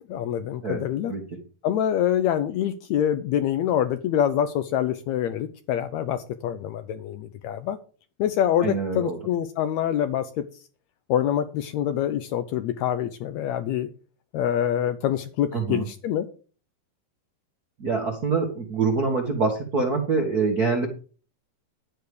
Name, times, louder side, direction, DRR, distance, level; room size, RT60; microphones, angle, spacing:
voice 1, 0.1-1.1 1.6-7.8 8.2-10.4 11.1-13.9 14.3-16.3, left 10 dB, 85° left, 10 dB, 1.5 m, -25 dB
voice 2, 8.6-9.2 15.5-15.9 17.8-20.9, right 4 dB, 55° right, 1 dB, 1.0 m, -25 dB
12.5 x 4.7 x 6.8 m, 0.39 s
omnidirectional pair, 4.0 m